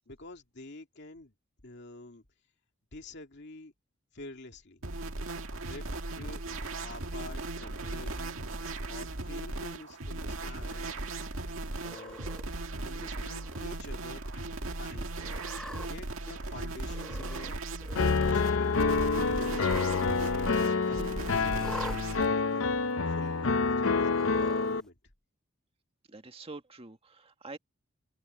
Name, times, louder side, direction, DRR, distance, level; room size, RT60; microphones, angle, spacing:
voice 1, 0.1-1.3 1.6-2.3 2.9-3.7 4.1-4.9 5.5-6.4 6.8-8.4 8.9-11.4 11.8-12.2 12.8-15.3 15.8-17.6 17.9-19.8 20.1-22.7 23.1-25.0, left 2 dB, 55° left, 2.3 m, -48 dB
sound 1, 4.8-22.3, right 2 dB, 75° right, 2.0 m, -37 dB
Cat, 11.8-12.4 13.1-13.6 14.0-14.1 15.2-15.9 16.9-17.5 17.8-18.4 19.4-20.1 20.4-20.5 21.6-22.0 22.9-23.0 24.1-24.7, equal, 5° left, 0.7 m, -43 dB
Piano, 18.0-24.8, left 4 dB, 70° left, 0.7 m, -27 dB
voice 2, 26.1-27.6, right 3 dB, 30° right, 1.8 m, -46 dB
head